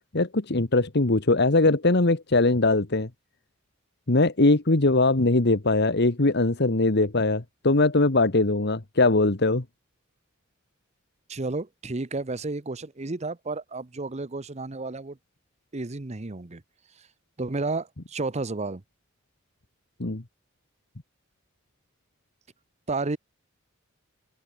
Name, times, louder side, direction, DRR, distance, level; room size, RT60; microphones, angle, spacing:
voice 1, 0.1-3.1 4.1-9.6 20.0-20.2, left 2 dB, 55° left, 1.4 m, -21 dB
voice 2, 11.3-15.2 15.7-16.6 17.4-18.8 22.9-23.2, right 3 dB, 30° right, 0.9 m, -31 dB
head